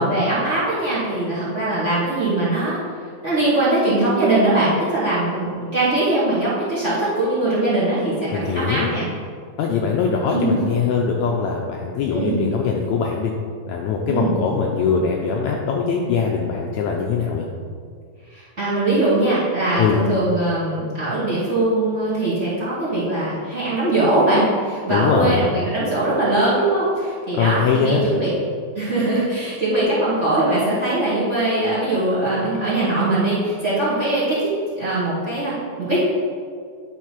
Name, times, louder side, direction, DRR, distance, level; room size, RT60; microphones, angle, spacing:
voice 1, 0.0-2.8 3.2-9.0 10.2-10.6 12.1-12.4 14.1-14.3 18.6-28.3 28.8-34.5 34.8-36.0, right 2 dB, 25° right, -11 dB, 1.8 m, -21 dB
voice 2, 8.3-8.9 9.6-13.3 13.7-17.5 19.8-20.0 24.9-25.4 27.3-28.1, left 5 dB, 85° left, 0 dB, 1.7 m, -21 dB
10.5 x 4.0 x 4.6 m, 2.1 s
omnidirectional pair, 3.8 m